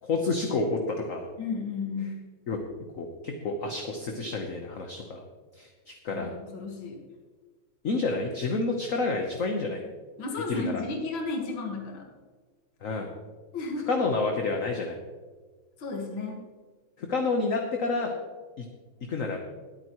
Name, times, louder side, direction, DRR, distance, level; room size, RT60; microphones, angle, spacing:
voice 1, 0.0-1.3 2.5-2.6 2.9-5.2 5.5-6.3 7.8-9.8 10.5-10.8 12.8-13.1 13.9-15.0 17.0-18.1 18.6-18.7 19.0-19.4, left 3 dB, 45° left, 3 dB, 1.2 m, -29 dB
voice 2, 1.4-2.2 6.1-7.0 10.2-12.1 13.5-14.0 15.8-16.4, left 3 dB, 65° left, 1 dB, 2.4 m, -33 dB
21.5 x 9.0 x 3.1 m, 1.4 s
omnidirectional pair, 2.3 m